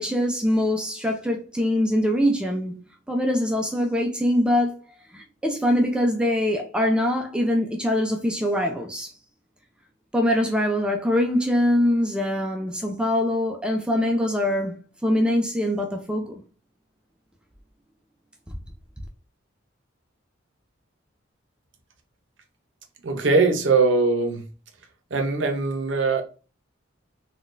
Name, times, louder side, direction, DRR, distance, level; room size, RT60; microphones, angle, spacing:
voice 1, 0.0-4.8 5.1-9.1 10.1-16.4, left 1 dB, 5° right, 0.3 m, -23 dB
voice 2, 23.0-24.4 25.1-26.2, right 4 dB, 65° right, 0.7 m, -21 dB
3.7 x 2.3 x 2.5 m
head